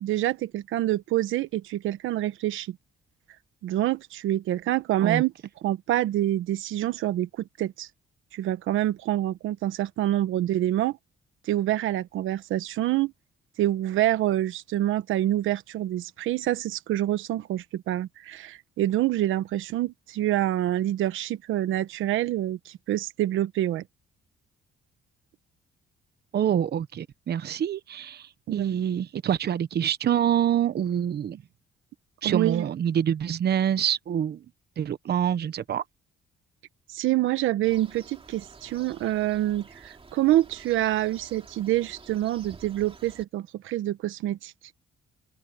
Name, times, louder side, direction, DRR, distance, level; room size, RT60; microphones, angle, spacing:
voice 1, 0.0-2.8 3.6-5.3 5.6-7.9 8.3-11.0 11.4-13.1 13.6-23.8 28.5-28.8 32.2-32.7 36.9-44.5, right 13 dB, 85° right, 1.1 m, -26 dB
voice 2, 26.3-31.4 32.2-34.4 34.8-35.8, right 9 dB, 55° right, 1.0 m, -26 dB
sound 1, 37.6-43.2, right 4 dB, 30° right, 2.7 m, -50 dB
open air
cardioid pair, 90°, 20 cm